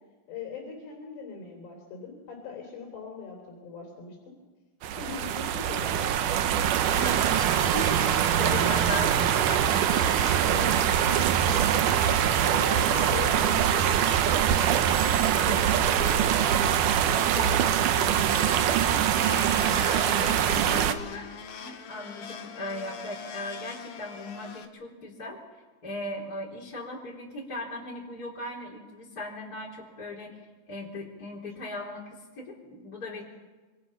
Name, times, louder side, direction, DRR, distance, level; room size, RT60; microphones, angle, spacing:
voice 1, 0.3-4.3 5.0-6.8 8.9-9.5 10.4-18.9, left 6 dB, 85° left, 0 dB, 5.9 m, -41 dB
sound 1, 4.8-20.9, right 10 dB, 75° right, 1.9 m, -24 dB
voice 2, 6.8-10.7 11.0-11.2 12.9-13.1 19.1-25.4 25.8-30.3 30.7-33.2, left 1 dB, 25° left, -5 dB, 3.6 m, -38 dB
sound 2, 6.8-20.9, equal, 25° right, 7.5 m, -38 dB
Domestic sounds home sounds, 19.1-24.6, left 7 dB, 70° left, 1.4 m, -42 dB
26.5 x 26.0 x 5.8 m, 1.3 s
omnidirectional pair, 4.8 m